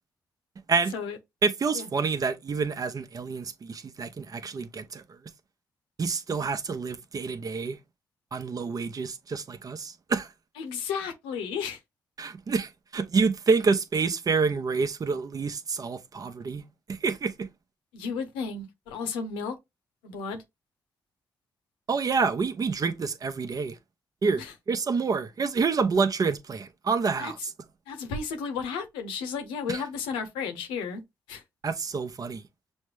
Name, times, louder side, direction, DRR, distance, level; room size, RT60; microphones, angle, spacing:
voice 1, 1.4-5.0 6.0-7.8 8.3-10.3 12.2-16.6 16.9-17.5 21.9-23.7 24.2-27.3 29.7-29.8 31.6-32.4, right 5 dB, 45° right, 0.7 m, -28 dB
voice 2, 10.6-11.8 17.9-19.5 20.0-20.4 24.4-24.5 27.2-27.3 27.9-31.0 31.3-31.4, left 5 dB, 90° left, 0.7 m, -33 dB
6.2 x 2.1 x 3.2 m
hypercardioid pair, 45°, 8 cm